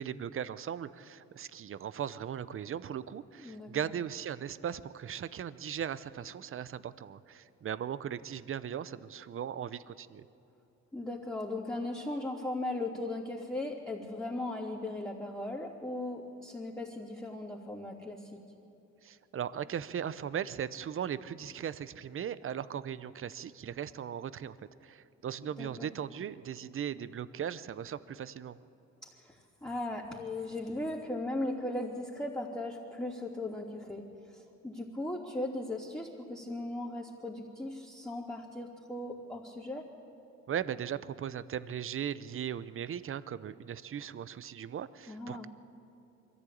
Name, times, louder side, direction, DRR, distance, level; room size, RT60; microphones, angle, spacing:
voice 1, 0.0-10.2 19.0-24.6 24.8-28.6 40.5-45.5, right 9 dB, 45° right, 15 dB, 0.7 m, -38 dB
voice 2, 3.4-3.7 10.9-18.4 25.6-25.9 29.0-29.4 29.6-34.0 34.3-39.9 45.1-45.5, left 2 dB, 15° left, -9 dB, 3.1 m, -38 dB
23.0 x 15.0 x 8.6 m, 2.9 s
cardioid pair, 90°, 30 cm